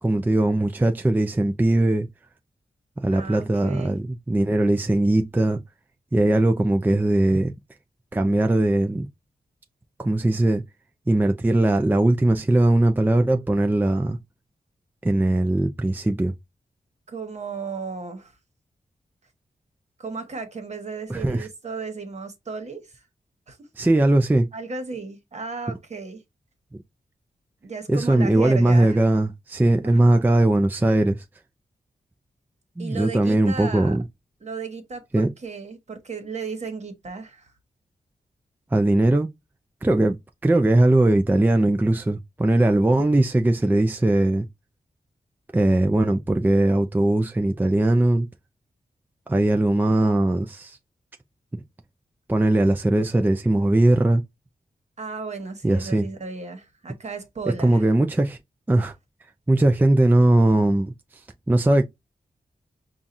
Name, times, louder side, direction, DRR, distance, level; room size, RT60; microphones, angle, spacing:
voice 1, 0.0-2.1 3.0-5.6 6.1-7.5 8.1-9.1 10.0-10.6 11.1-14.2 15.0-16.3 21.1-21.5 23.8-24.5 26.7-26.8 27.9-31.2 32.8-34.0 35.1-35.3 38.7-39.3 39.8-40.2 40.4-44.5 45.5-48.3 49.3-50.8 51.5-51.6 52.3-54.2 55.6-56.1 57.6-58.4 58.7-58.9 59.5-60.9 61.5-61.8, right 1 dB, 10° right, 0.4 m, -20 dB
voice 2, 3.1-4.0 17.1-18.3 20.0-23.0 23.5-23.7 24.5-26.2 27.6-29.0 29.8-30.2 32.8-34.0 34.4-37.5 40.5-40.6 55.0-57.9, right 4 dB, 50° right, 1.3 m, -35 dB
5.6 x 2.4 x 2.6 m
wide cardioid pair, 90°, 15 cm